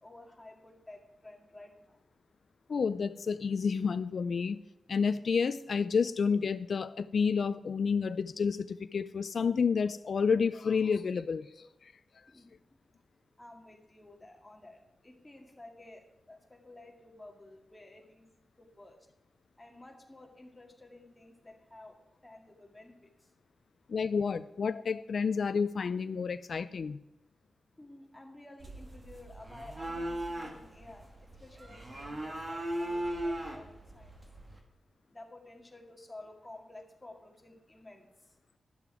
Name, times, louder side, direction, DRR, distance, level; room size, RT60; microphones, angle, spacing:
voice 1, 0.0-2.0 12.3-12.5 13.4-14.8 15.0-18.2 18.6-19.0 19.6-22.0 22.2-22.9 27.8-31.1 31.4-34.1 35.1-38.1, left 2 dB, 15° left, 1 dB, 2.0 m, -52 dB
voice 2, 2.7-4.6 4.9-11.5 11.8-11.9 23.9-27.0, left 5 dB, 55° left, 12 dB, 0.4 m, -30 dB
sound 1, 28.6-34.6, right 1 dB, 30° right, 1.9 m, -38 dB
12.0 x 10.5 x 4.8 m, 0.91 s
wide cardioid pair, 150°, 0 cm